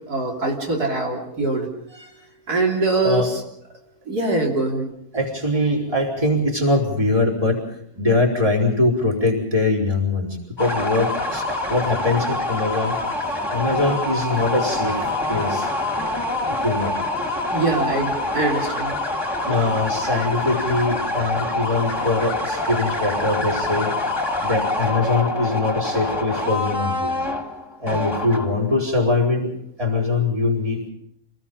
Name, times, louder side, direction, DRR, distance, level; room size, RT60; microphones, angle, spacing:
voice 1, 0.1-2.1 2.5-3.4 4.1-4.9 17.5-19.0, right 3 dB, 90° right, 0 dB, 3.9 m, -23 dB
voice 2, 5.1-7.6 8.0-13.0 13.5-15.0 15.3-15.7 16.5-17.0 19.5-23.9 24.4-27.1 27.8-29.5 29.8-30.9, left 2 dB, 20° right, -1 dB, 4.5 m, -22 dB
sound 1, 10.6-28.7, left 2 dB, 15° left, 2.4 m, -25 dB
27.0 x 19.5 x 5.5 m, 0.72 s
omnidirectional pair, 1.6 m